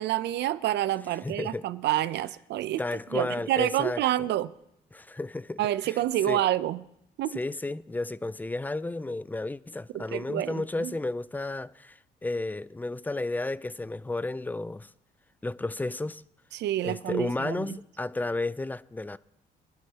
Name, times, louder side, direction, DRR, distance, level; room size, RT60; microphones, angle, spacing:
voice 1, 0.0-2.8 3.1-4.5 5.6-6.8 7.2-7.4 9.9-10.9 16.5-17.7, right 13 dB, 75° right, 0.6 m, -28 dB
voice 2, 1.2-1.7 2.8-4.0 4.9-6.4 7.3-14.9 15.4-16.2 16.8-19.2, left 2 dB, 10° left, 0.4 m, -32 dB
23.0 x 11.0 x 2.9 m
cardioid pair, 85°, 18 cm